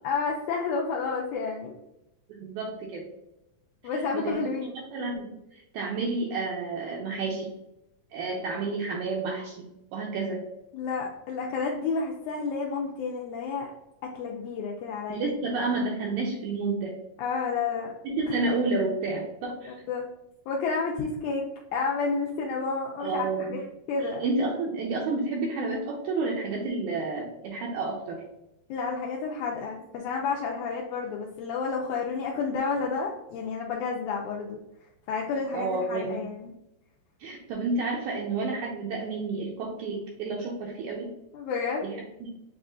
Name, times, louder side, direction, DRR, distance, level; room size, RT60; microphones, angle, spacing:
voice 1, 0.0-1.7 3.8-4.8 10.7-13.7 14.1-15.3 17.2-17.9 19.7-20.1 20.5-21.4 21.7-23.6 23.9-24.2 28.7-34.6 35.1-36.5 41.3-41.9, left 4 dB, 85° left, -1 dB, 1.7 m, -30 dB
voice 2, 2.3-3.1 3.9-4.4 4.9-7.5 8.1-9.6 9.9-10.4 15.1-17.0 18.0-19.7 23.0-23.6 24.0-28.2 35.5-36.2 37.2-41.1 41.8-42.3, right 3 dB, 80° right, -1 dB, 1.8 m, -30 dB
7.1 x 2.4 x 2.4 m, 0.88 s
omnidirectional pair, 3.9 m